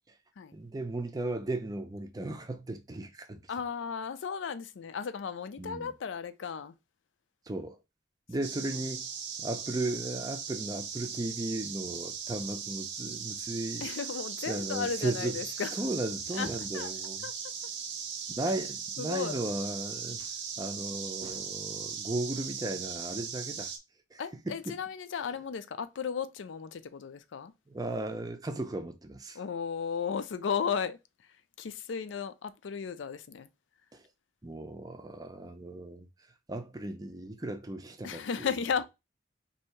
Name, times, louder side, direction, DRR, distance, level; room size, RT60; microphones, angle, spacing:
voice 1, 0.5-3.4 5.6-5.9 7.5-7.8 8.3-9.1 9.4-13.9 14.5-17.3 18.4-23.7 24.1-24.2 24.5-24.6 27.7-29.4 33.9-34.0 34.4-36.1 36.5-38.5, right 2 dB, 20° right, 0.4 m, -36 dB
voice 2, 3.5-6.7 13.8-15.7 16.3-16.5 16.7-16.9 17.2-17.3 19.0-19.4 24.2-27.5 29.3-31.0 31.6-33.5 38.0-38.9, left 6 dB, 85° left, 0.4 m, -35 dB
sound 1, 8.4-23.8, right 7 dB, 75° right, 0.6 m, -38 dB
2.7 x 2.7 x 4.3 m
head